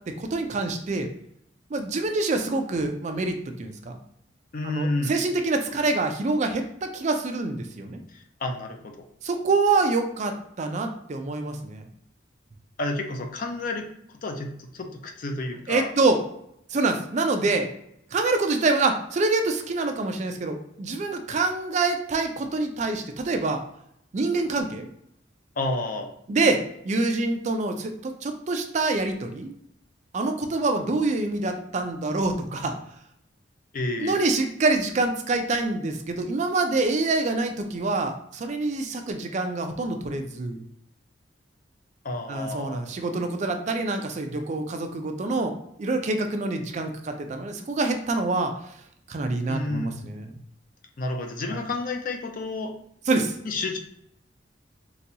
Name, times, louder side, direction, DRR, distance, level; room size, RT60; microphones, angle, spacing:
voice 1, 0.2-1.1 1.7-4.0 4.6-8.0 9.2-11.8 15.7-16.2 16.7-17.7 18.1-23.6 24.1-24.9 26.3-26.6 26.9-29.5 30.1-32.7 34.0-40.6 42.3-45.5 45.8-48.5 49.1-50.2 51.5-51.6 53.1-53.3, right 3 dB, 40° right, 5 dB, 0.4 m, -26 dB
voice 2, 4.5-5.2 8.1-9.0 12.8-13.9 14.2-15.9 25.6-26.1 33.7-34.3 42.0-42.8 49.5-49.9 51.0-52.7 53.4-53.8, left 2 dB, 45° left, 4 dB, 0.4 m, -30 dB
4.0 x 2.2 x 2.7 m, 0.72 s
head